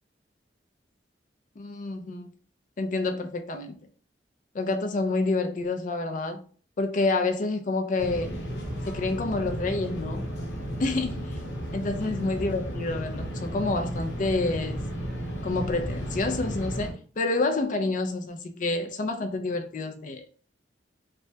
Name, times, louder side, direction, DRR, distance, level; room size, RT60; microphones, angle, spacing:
voice 1, 1.6-2.3 2.8-3.8 4.5-6.4 6.8-8.4 8.9-10.3 10.8-11.4 11.7-14.8 15.4-20.3, left 3 dB, 45° left, 0.4 m, -28 dB
sound 1, 8.0-16.9, equal, 70° left, 1.0 m, -33 dB
3.3 x 2.1 x 2.7 m
head